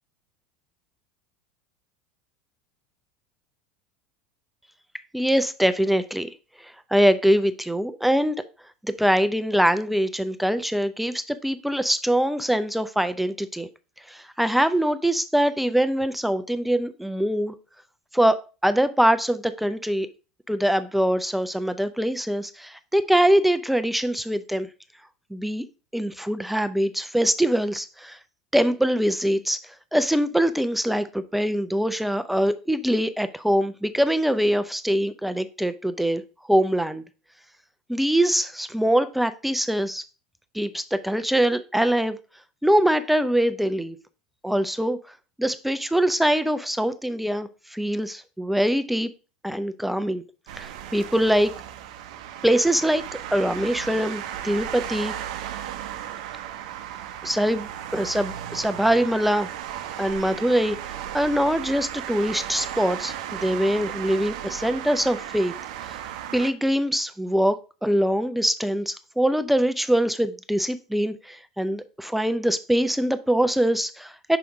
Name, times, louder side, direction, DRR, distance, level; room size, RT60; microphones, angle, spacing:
voice 1, 5.1-6.3 6.9-8.4 8.8-13.7 14.1-17.5 18.1-18.4 18.6-20.1 20.5-24.7 25.3-25.6 25.9-28.2 28.5-29.6 29.9-36.2 36.5-37.0 37.9-40.0 40.5-42.2 42.6-44.0 44.4-45.0 45.4-49.1 49.4-50.2 50.6-51.5 52.4-53.0 53.3-55.1 57.2-59.5 60.0-60.8 61.1-65.5 65.9-66.0 66.3-74.4, equal, 5° right, 0.5 m, -23 dB
sound 1, 50.5-66.5, right 11 dB, 70° right, 0.6 m, -35 dB
5.8 x 3.5 x 5.1 m
hypercardioid pair, 85°, 4 cm